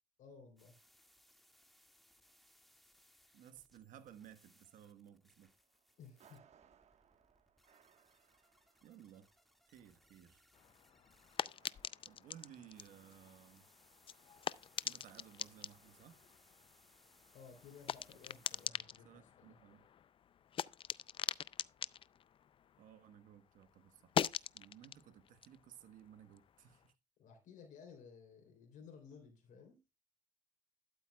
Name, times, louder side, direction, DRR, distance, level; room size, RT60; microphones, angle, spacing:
voice 1, 0.2-0.8 6.0-6.4 17.3-19.6 27.2-29.8, left 6 dB, 65° left, 3.2 m, -57 dB
sound 1, 0.6-18.7, equal, ahead, 1.7 m, -70 dB
voice 2, 3.3-5.5 8.8-9.3 9.7-10.4 12.0-13.7 14.8-16.2 19.0-19.9 22.8-24.1 24.5-26.9, right 10 dB, 70° right, 1.2 m, -58 dB
sound 2, 5.4-15.7, right 8 dB, 55° right, 1.2 m, -72 dB
sound 3, 10.5-23.3 23.6-26.8, left 9 dB, 40° left, 0.4 m, -44 dB
11.5 x 8.9 x 2.2 m
supercardioid pair, 80°, 14 cm